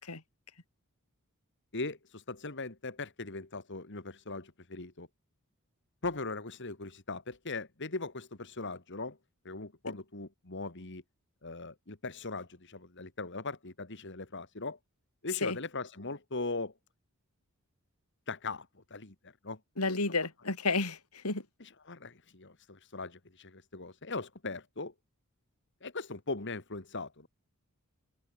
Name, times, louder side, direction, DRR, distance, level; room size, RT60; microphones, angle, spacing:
voice 1, 1.7-5.1 6.0-9.2 9.4-11.0 11.4-14.8 15.2-16.7 18.3-19.6 21.6-24.9 25.8-27.3, left 3 dB, 55° left, 2.3 m, -40 dB
voice 2, 19.8-21.0 21.2-21.4, left 3 dB, 85° left, 3.9 m, -30 dB
open air
head